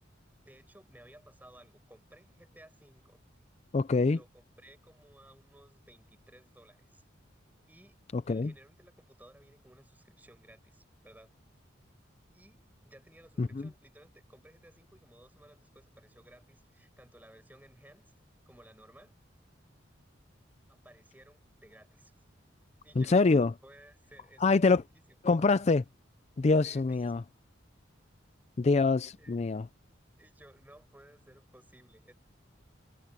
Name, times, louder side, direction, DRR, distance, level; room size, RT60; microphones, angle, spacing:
voice 1, 0.4-3.2 4.0-7.1 7.7-8.0 8.3-11.4 12.3-18.1 18.4-19.2 20.8-22.2 22.8-23.3 23.6-25.1 26.6-27.0 29.2-29.4 30.1-32.1, right 1 dB, 10° right, 6.7 m, -58 dB
voice 2, 3.7-4.2 8.3-8.5 13.4-13.5 23.0-23.5 24.4-24.8 25.3-25.8 26.4-27.2 28.6-29.6, left 3 dB, 35° left, 0.4 m, -25 dB
head